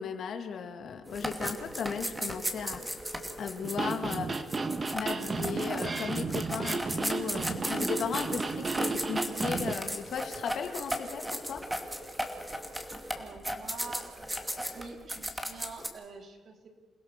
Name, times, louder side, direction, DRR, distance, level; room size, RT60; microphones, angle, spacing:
voice 1, 0.0-2.8 3.4-4.4 4.9-11.6, left 6 dB, 60° left, 5 dB, 2.5 m, -36 dB
sound 1, 1.1-15.9, equal, 5° right, 2.6 m, -36 dB
sound 2, 3.6-9.7, right 4 dB, 35° right, 1.4 m, -33 dB
voice 2, 13.2-16.7, right 4 dB, 55° right, 4 dB, 3.4 m, -46 dB
28.5 x 16.0 x 6.9 m, 1.3 s
cardioid pair, 90°, 0 cm